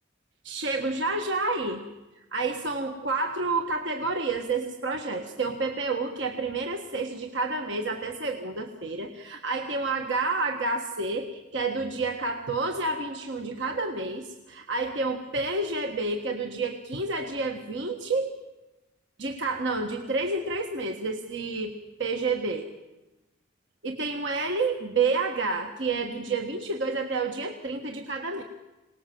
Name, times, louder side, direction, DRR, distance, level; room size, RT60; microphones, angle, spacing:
voice 1, 0.4-1.8 2.3-18.4 19.2-21.7 22.0-22.7 23.8-28.4, right 3 dB, 65° right, 4 dB, 1.5 m, -29 dB
26.5 x 19.0 x 7.7 m, 1.1 s
head